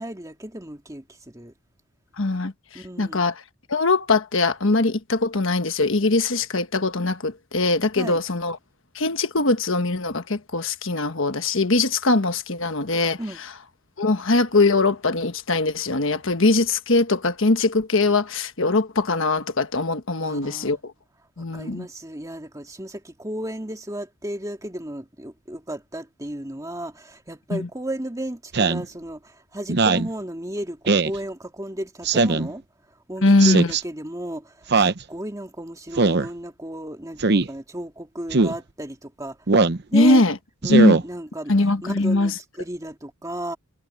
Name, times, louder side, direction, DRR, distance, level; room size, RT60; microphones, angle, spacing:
voice 1, 0.0-1.5 2.7-3.2 8.0-8.2 13.2-13.4 20.2-20.8 21.4-32.6 33.1-39.4 39.9-40.2 40.6-41.5 41.8-43.6, right 1 dB, 15° right, 2.3 m, -34 dB
voice 2, 2.2-3.4 3.7-8.6 8.9-13.2 14.0-20.9 21.4-21.9 27.5-27.7 33.2-33.7 39.9-40.4 40.7-41.0 41.5-42.3, left 2 dB, 60° left, 1.3 m, -21 dB
Speech synthesizer, 28.5-28.8 29.7-30.1 30.9-31.2 32.0-32.5 33.4-33.8 34.7-35.0 36.0-36.3 37.2-37.5 38.3-38.6 39.5-39.8 40.6-41.0, right 3 dB, 50° right, 0.8 m, -19 dB
head